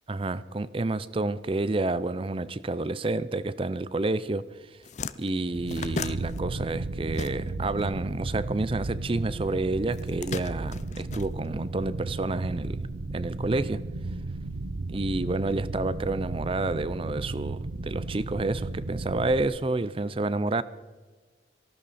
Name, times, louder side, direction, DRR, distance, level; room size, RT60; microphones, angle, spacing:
voice 1, 0.1-4.5 5.2-12.9 13.1-13.8 14.9-20.6, right 2 dB, 30° right, 16 dB, 0.5 m, -29 dB
sound 1, 4.2-4.4 4.6-7.8 8.1-9.2 9.9-11.9, left 4 dB, 40° left, 0.5 m, -37 dB
sound 2, 5.5-19.4, right 2 dB, 80° right, 0.7 m, -34 dB
18.5 x 15.5 x 4.2 m, 1.3 s
head